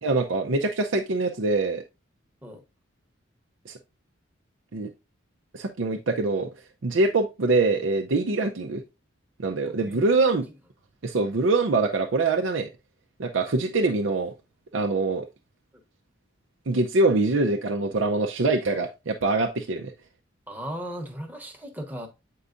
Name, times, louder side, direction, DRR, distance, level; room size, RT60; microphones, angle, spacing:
voice 1, 0.0-1.8 3.7-3.8 4.7-4.9 5.5-6.5 6.8-8.8 9.4-10.4 11.0-12.7 13.2-14.3 14.7-15.3 16.7-19.9, right 3 dB, 80° right, 0.6 m, -24 dB
voice 2, 9.6-10.4 15.7-15.8 20.5-22.1, equal, 10° right, 1.0 m, -37 dB
8.2 x 4.7 x 2.5 m
head